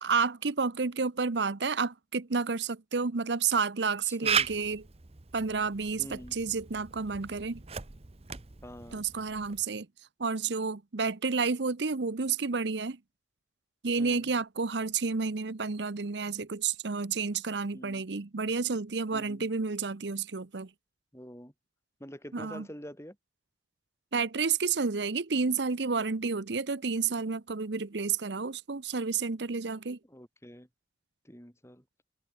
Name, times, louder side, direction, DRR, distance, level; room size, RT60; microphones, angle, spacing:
voice 1, 0.0-4.8 5.3-7.6 8.9-9.9 10.2-13.0 13.8-20.7 22.3-22.7 24.1-30.0, right 5 dB, 70° right, 0.8 m, -30 dB
voice 2, 4.0-4.5 6.0-6.3 8.6-9.1 14.0-14.3 17.7-18.0 19.1-19.5 21.1-21.5 22.0-23.2 30.1-30.7 31.2-31.8, equal, 15° left, 5.9 m, -46 dB
Camera, 4.2-9.6, right 7 dB, 35° right, 0.9 m, -36 dB
head